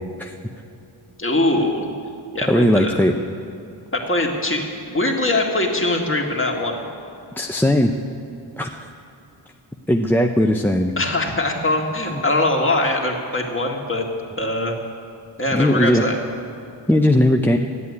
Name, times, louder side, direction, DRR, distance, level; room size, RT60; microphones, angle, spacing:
voice 1, 1.2-1.9 2.3-2.9 3.9-6.8 11.0-14.1 14.4-14.7 15.4-16.2, left 2 dB, 25° left, 0 dB, 2.1 m, -22 dB
voice 2, 2.5-3.1 7.4-7.9 8.6-8.9 9.9-10.9 15.5-16.0 16.9-17.6, left 1 dB, 5° left, 3 dB, 0.6 m, -18 dB
14.0 x 8.3 x 9.6 m, 2.6 s
wide cardioid pair, 70°, 49 cm